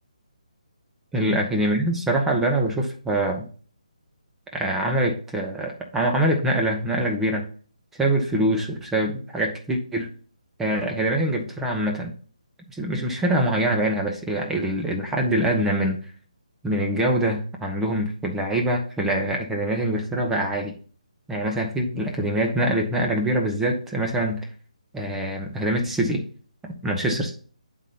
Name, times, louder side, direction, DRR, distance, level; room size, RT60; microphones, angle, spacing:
voice 1, 1.1-3.5 4.5-7.5 8.0-10.1 10.6-12.1 12.7-16.0 16.6-20.7 21.3-24.5 24.9-26.2 26.6-27.3, right 1 dB, 5° right, 1 dB, 0.9 m, -24 dB
8.1 x 3.9 x 4.1 m, 0.42 s
figure-of-eight pair, 150°, 4 cm